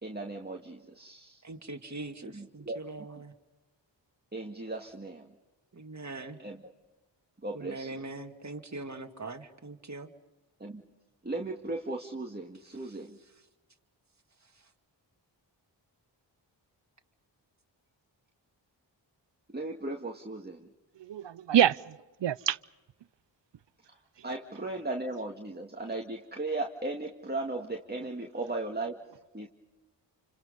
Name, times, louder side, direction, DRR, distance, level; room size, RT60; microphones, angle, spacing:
voice 1, 0.0-1.4 2.3-2.8 4.3-5.3 6.4-6.6 7.4-7.9 10.6-10.8 11.2-13.2 19.5-20.7 24.2-29.0 29.3-29.5, right 2 dB, 20° right, 2.1 m, -36 dB
voice 2, 1.4-3.3 5.7-6.4 7.5-10.1 12.7-13.4 14.4-14.7, right 2 dB, 40° right, 2.4 m, -42 dB
voice 3, 21.0-22.6, right 11 dB, 70° right, 0.7 m, -26 dB
28.5 x 26.5 x 5.4 m
cardioid pair, 45°, 45 cm